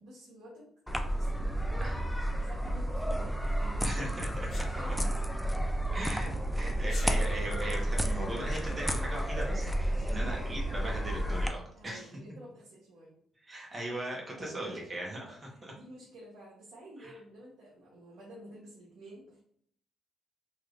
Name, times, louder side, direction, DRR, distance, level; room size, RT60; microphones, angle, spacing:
voice 1, 0.0-2.1 2.4-4.1 4.6-5.3 6.3-7.4 9.9-11.1 11.7-13.1 14.4-14.9 15.2-19.4, right 1 dB, 80° right, -6 dB, 1.0 m, -51 dB
sound 1, 0.9-11.5, right 1 dB, ahead, 0.4 m, -31 dB
voice 2, 3.8-4.3 4.5-4.9 5.9-6.3 6.6-12.1 13.4-15.4 17.0-17.2, right 1 dB, 30° right, -2 dB, 1.2 m, -39 dB
Sneeze, 4.5-4.7 6.8-7.1, left 4 dB, 55° left, 0.7 m, -44 dB
3.3 x 3.0 x 2.5 m, 0.65 s
cardioid pair, 90°, 0 cm